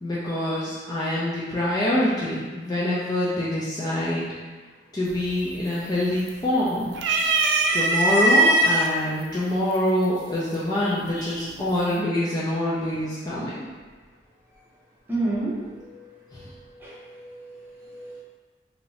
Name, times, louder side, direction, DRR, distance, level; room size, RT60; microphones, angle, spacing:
voice 1, 0.0-4.3 4.9-6.9 7.7-13.7 16.3-16.4, left 1 dB, 20° left, -8 dB, 0.4 m, -25 dB
sound 1, 5.1-5.5 5.8-6.5 6.9-8.9 9.7-9.8 11.1-11.5, right 2 dB, 75° right, 0.3 m, -20 dB
voice 2, 10.8-11.4 15.1-15.6 16.8-16.9 17.2-17.4 17.9-18.2, right 2 dB, 10° right, -9 dB, 0.8 m, -30 dB
2.7 x 2.5 x 3.1 m, 1.4 s
head